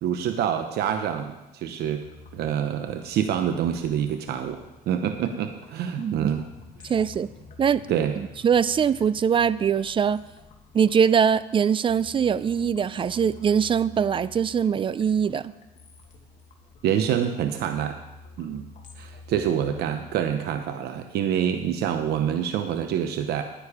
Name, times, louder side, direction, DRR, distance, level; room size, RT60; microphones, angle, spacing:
voice 1, 0.0-2.0 2.3-4.6 4.9-6.4 7.9-8.1 16.8-18.0 18.4-18.7 19.0-23.4, right 9 dB, 70° right, 7 dB, 0.9 m, -26 dB
sound 1, 2.0-20.2, left 3 dB, 50° left, 1.9 m, -49 dB
voice 2, 6.0-6.3 6.8-7.3 7.6-7.9 8.2-10.2 10.7-15.5, right 7 dB, 30° right, 17 dB, 0.4 m, -22 dB
10.5 x 9.9 x 4.9 m, 0.98 s
cardioid pair, 110°, 17 cm